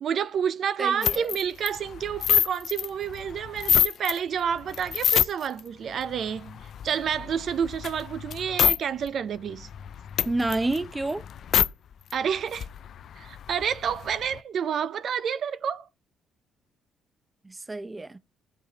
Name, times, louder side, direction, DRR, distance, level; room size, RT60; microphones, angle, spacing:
voice 1, 0.0-6.6 6.8-9.7 12.1-12.7 13.2-15.9, right 8 dB, 60° right, 0.5 m, -29 dB
voice 2, 0.8-1.3 10.2-11.2 17.4-18.2, right 2 dB, 20° right, 0.6 m, -29 dB
sound 1, 1.0-4.2 4.6-5.6 6.0-8.8 9.1-9.2 9.5-11.7 12.1-12.2 12.4-14.4, left 9 dB, 65° left, 0.4 m, -27 dB
14.5 x 5.4 x 3.9 m
cardioid pair, 90°, 0 cm